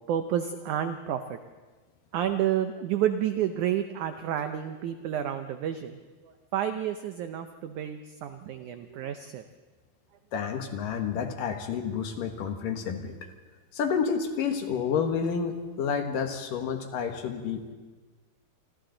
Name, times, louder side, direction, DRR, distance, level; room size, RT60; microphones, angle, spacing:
voice 1, 0.1-1.4 2.1-9.4 10.4-10.5, right 10 dB, 90° right, 8 dB, 1.7 m, -30 dB
voice 2, 10.3-13.1 13.7-17.7, left 6 dB, 65° left, 6 dB, 2.7 m, -30 dB
28.5 x 26.0 x 3.9 m, 1.3 s
omnidirectional pair, 4.5 m